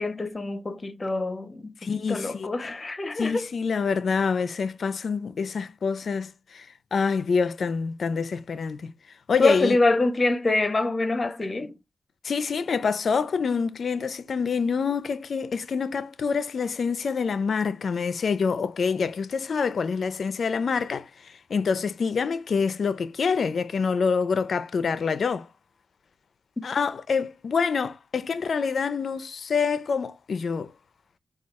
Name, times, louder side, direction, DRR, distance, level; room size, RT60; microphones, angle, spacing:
voice 1, 0.0-1.7 2.1-3.5 9.4-11.7, left 2 dB, 35° left, 0.7 m, -25 dB
voice 2, 1.8-2.5 3.2-8.9 9.3-9.8 12.2-25.5 26.6-30.7, left 5 dB, 65° left, 0.4 m, -26 dB
4.6 x 2.3 x 4.1 m
cardioid pair, 80°, 0 cm